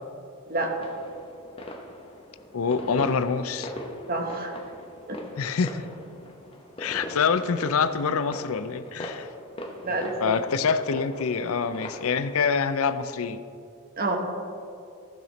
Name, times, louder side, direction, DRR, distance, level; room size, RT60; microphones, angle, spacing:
sound 1, 0.7-12.5, left 1 dB, 25° left, 0.9 m, -41 dB
voice 1, 2.5-3.7 5.4-5.8 6.8-9.3 10.2-13.4, left 5 dB, 65° left, 12 dB, 0.5 m, -26 dB
voice 2, 4.1-4.5 5.1-5.2 6.9-7.0 9.8-10.3 14.0-14.2, right 2 dB, 40° right, 3 dB, 1.2 m, -28 dB
14.5 x 5.8 x 4.1 m, 2.5 s
head